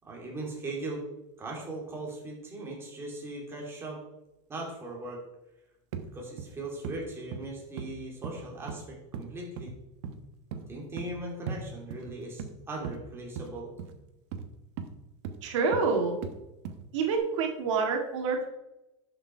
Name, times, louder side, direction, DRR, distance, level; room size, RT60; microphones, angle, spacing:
voice 1, 0.0-1.0 1.4-4.0 4.5-5.2 6.1-9.7 10.7-13.7, right 2 dB, 15° right, -2 dB, 3.0 m, -39 dB
sound 1, 5.9-6.1 6.4-6.6 6.8-7.0 7.3-7.5 7.8-7.9 8.2-8.8 9.1-9.3 9.6-9.8 10.0-10.2 10.5-10.6 11.0-11.1 11.5-11.6 11.9-12.5 12.8-13.0 13.4-13.5 13.8-13.9 14.3-14.5 14.8-14.9 15.2-15.4 15.7-15.9 16.2-16.3 16.6-16.9 17.2-17.3, right 7 dB, 65° right, 1.2 m, -38 dB
voice 2, 15.4-16.2 16.9-18.5, right 4 dB, 85° right, 3 dB, 2.0 m, -27 dB
11.0 x 6.7 x 4.6 m, 0.94 s
supercardioid pair, 155°, 15 cm